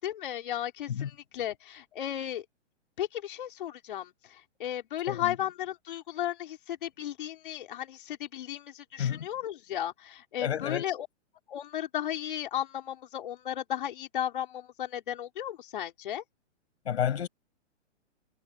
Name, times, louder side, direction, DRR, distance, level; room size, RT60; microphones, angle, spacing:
voice 1, 0.0-2.4 3.0-11.1 11.5-16.2, left 11 dB, 45° left, 5.0 m, -35 dB
voice 2, 10.4-10.9 16.8-17.3, left 9 dB, 60° left, 6.4 m, -30 dB
hypercardioid pair, 180°, 36 cm